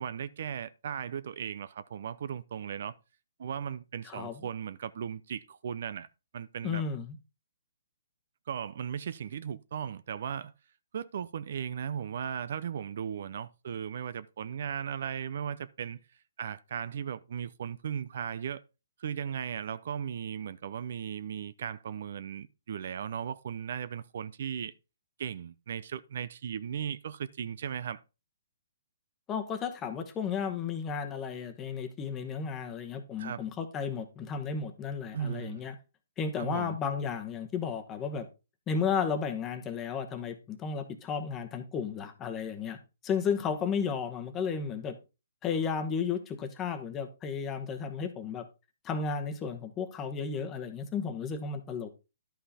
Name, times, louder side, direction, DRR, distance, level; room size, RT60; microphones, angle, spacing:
voice 1, 0.0-2.9 3.4-6.1 6.3-6.8 8.5-10.5 10.9-16.0 16.4-18.6 19.0-24.7 25.2-28.0 33.2-33.4 35.1-35.6 36.4-36.8, right 8 dB, 55° right, 0.5 m, -37 dB
voice 2, 4.0-4.4 6.6-7.1 29.3-35.7 36.2-38.3 38.7-42.8 43.0-45.0 45.4-48.4 48.8-51.9, left 6 dB, 15° left, 1.1 m, -33 dB
11.5 x 5.6 x 4.2 m
hypercardioid pair, 160°, 0 cm